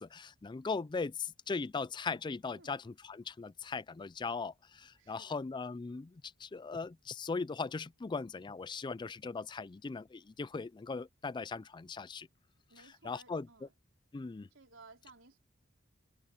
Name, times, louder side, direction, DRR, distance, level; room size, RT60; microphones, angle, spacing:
voice 1, 0.0-12.3 13.0-13.5 14.1-14.5, left 4 dB, 25° left, 0.3 m, -39 dB
voice 2, 5.0-5.4 12.7-13.7 14.5-15.4, right 3 dB, 75° right, 3.9 m, -58 dB
head